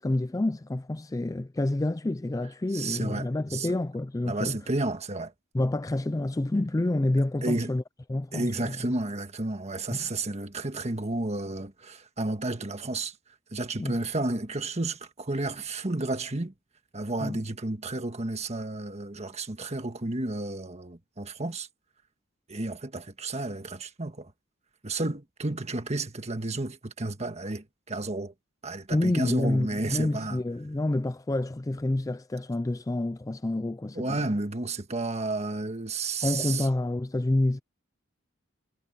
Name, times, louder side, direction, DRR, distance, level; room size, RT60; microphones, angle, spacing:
voice 1, 0.0-4.6 5.5-7.8 8.1-8.8 9.9-10.1 13.8-14.0 17.2-17.4 28.9-34.3 36.2-37.6, left 2 dB, 15° left, 0.4 m, -28 dB
voice 2, 2.7-3.7 4.2-5.3 7.4-7.7 8.3-13.1 13.5-16.5 16.9-21.7 22.5-24.3 24.8-28.3 28.6-30.4 33.9-36.7, right 2 dB, 30° right, 1.6 m, -32 dB
head